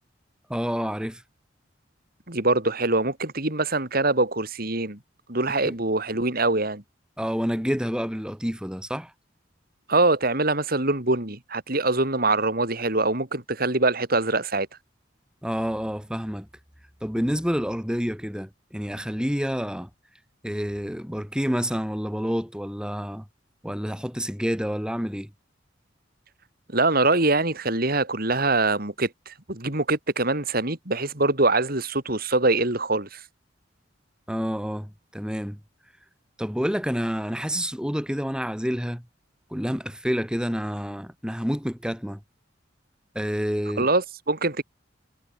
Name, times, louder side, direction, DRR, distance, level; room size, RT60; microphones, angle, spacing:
voice 1, 0.5-1.2 5.7-5.8 7.2-9.1 15.4-16.5 17.0-19.9 20.4-23.2 23.6-25.3 34.3-35.6 36.4-39.0 39.5-42.2 43.2-43.9, equal, 5° right, 7.0 m, -28 dB
voice 2, 2.3-5.0 5.3-6.8 9.9-14.7 26.7-33.2 43.8-44.6, right 2 dB, 50° right, 3.9 m, -24 dB
head